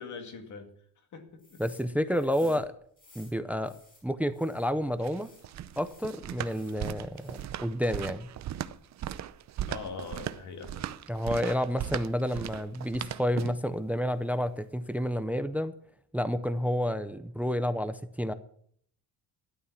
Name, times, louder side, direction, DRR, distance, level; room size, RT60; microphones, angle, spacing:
voice 1, 0.0-1.6 2.1-2.5 9.6-10.9, left 4 dB, 45° left, 6 dB, 2.2 m, -43 dB
sound 1, 1.4-4.7 5.1-6.8 7.1-7.7, left 2 dB, 20° left, 5.4 m, -58 dB
voice 2, 1.6-2.7 3.2-3.7 4.0-5.3 5.8-8.3 11.1-15.7 16.1-18.3, equal, 5° right, 13 dB, 0.5 m, -30 dB
sound 2, 4.8-13.7, right 11 dB, 45° right, 0.7 m, -38 dB
13.0 x 11.5 x 5.9 m, 0.63 s
cardioid pair, 175°, 39 cm